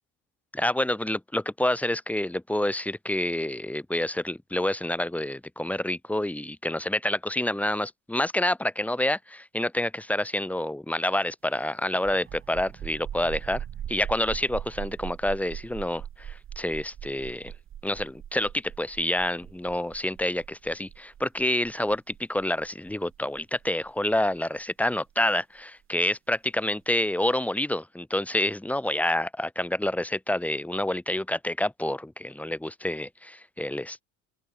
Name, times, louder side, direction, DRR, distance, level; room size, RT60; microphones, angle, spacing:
voice 1, 0.5-17.5 17.8-34.0, left 1 dB, 5° left, 7.4 m, -28 dB
sound 1, 12.0-25.3, right 10 dB, 40° right, 7.7 m, -40 dB
open air
cardioid pair, 140°, 33 cm